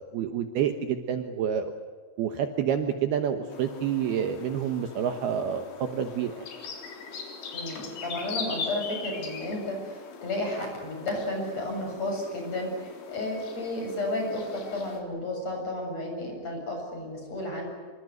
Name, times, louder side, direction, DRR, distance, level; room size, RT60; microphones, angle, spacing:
voice 1, 0.0-1.7 2.2-6.5, right 8 dB, 70° right, 7 dB, 2.8 m, -28 dB
sound 1, 3.5-15.0, left 5 dB, 70° left, 5.8 m, -41 dB
voice 2, 7.5-12.7 13.1-17.7, left 1 dB, 35° left, 2 dB, 8.4 m, -32 dB
27.0 x 25.0 x 8.1 m, 1.5 s
omnidirectional pair, 5.5 m